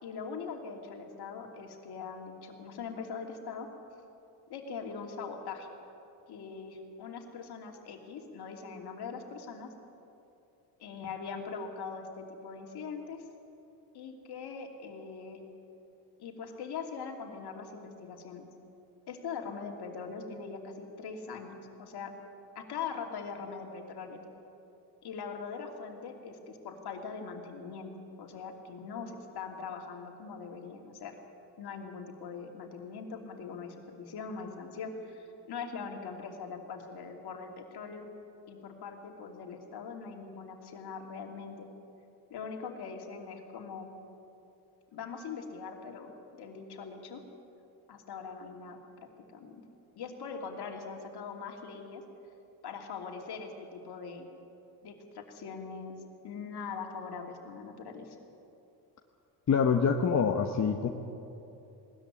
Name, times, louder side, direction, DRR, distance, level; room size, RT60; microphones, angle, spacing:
voice 1, 0.0-3.7 4.5-5.7 6.3-9.7 10.8-13.2 13.9-15.4 16.2-18.5 19.1-22.1 22.5-24.2 25.0-27.9 28.2-31.1 31.6-38.1 38.5-41.7 42.3-43.9 44.9-47.2 47.9-49.6 49.9-52.0 52.6-54.3 54.8-56.0 56.2-58.2, left 5 dB, 55° left, 3 dB, 3.0 m, -42 dB
voice 2, 59.5-60.9, left 6 dB, 35° left, 3 dB, 1.3 m, -25 dB
19.5 x 13.5 x 9.9 m, 2.8 s
supercardioid pair, 85°, 45 cm